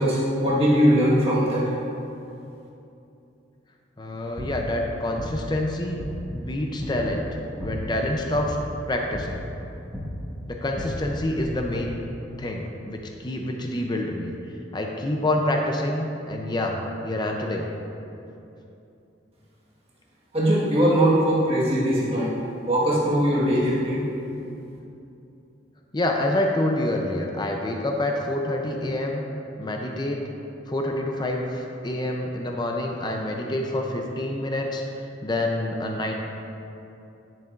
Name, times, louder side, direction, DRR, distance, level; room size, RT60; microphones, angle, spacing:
voice 1, 0.0-1.7 20.3-22.3 22.7-24.1, equal, 35° right, -7 dB, 1.5 m, -21 dB
voice 2, 4.0-6.0 6.3-7.3 7.6-8.6 8.9-9.4 10.5-12.0 12.4-17.7 25.9-29.2 29.6-30.2 30.7-36.1, left 1 dB, 25° left, 1 dB, 0.5 m, -27 dB
sound 1, 4.0-11.8, equal, 5° right, 1.4 m, -35 dB
10.5 x 7.5 x 2.5 m, 2.8 s
head